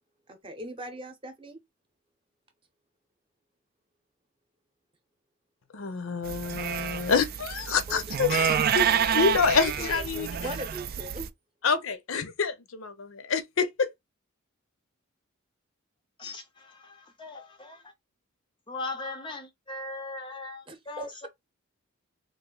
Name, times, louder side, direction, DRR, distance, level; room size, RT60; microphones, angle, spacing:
voice 1, 0.3-1.6 7.9-9.2 9.8-11.3 20.7-21.3, right 1 dB, 25° right, 0.8 m, -40 dB
voice 2, 5.7-10.3 11.6-13.9, left 5 dB, 65° left, 0.6 m, -27 dB
sound 1, 6.2-11.3, right 8 dB, 45° right, 0.3 m, -28 dB
voice 3, 16.2-17.8 18.7-21.3, left 2 dB, 20° left, 0.5 m, -39 dB
3.1 x 2.6 x 3.8 m
head